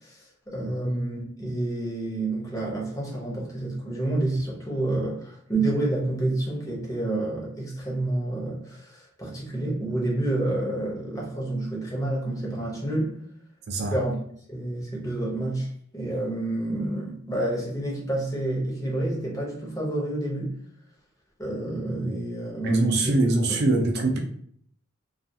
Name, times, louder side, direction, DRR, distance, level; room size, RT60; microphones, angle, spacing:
voice 1, 0.0-13.2 13.9-14.2 14.5-15.7 15.9-20.6 21.4-23.1, right 2 dB, 15° left, -4 dB, 0.7 m, -29 dB
voice 2, 22.6-24.2, right 2 dB, 55° right, 2 dB, 0.4 m, -23 dB
2.3 x 2.3 x 2.7 m, 0.63 s
head